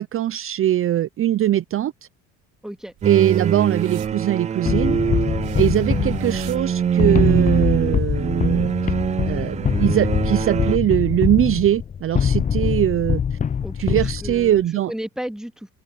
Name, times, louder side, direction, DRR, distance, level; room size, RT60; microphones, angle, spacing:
voice 1, 0.0-2.1 3.0-5.0 5.5-8.7 9.2-13.4 13.8-14.9, right 12 dB, 40° right, 0.8 m, -21 dB
voice 2, 2.6-2.9 13.6-15.7, equal, ahead, 2.4 m, -33 dB
sound 1, 2.9-7.4 7.7-8.4, right 18 dB, 70° right, 5.6 m, -44 dB
sound 2, 3.0-10.8, right 8 dB, 20° right, 0.4 m, -23 dB
sound 3, 4.7-14.6, left 7 dB, 25° left, 0.6 m, -23 dB
open air
supercardioid pair, 80°, 32 cm